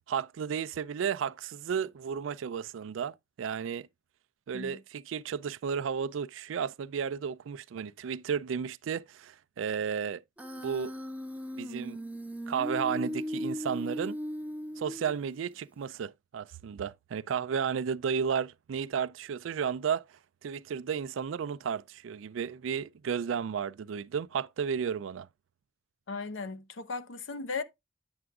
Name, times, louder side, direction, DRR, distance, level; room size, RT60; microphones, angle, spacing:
voice 1, 0.1-3.9 4.5-10.2 10.6-10.9 11.6-12.0 12.5-14.2 14.8-20.0 20.4-25.3, right 7 dB, 90° right, 0.4 m, -33 dB
Human voice, 10.4-15.4, equal, 10° right, 0.5 m, -37 dB
voice 2, 26.1-27.6, left 4 dB, 80° left, 0.7 m, -37 dB
8.7 x 6.9 x 2.4 m
head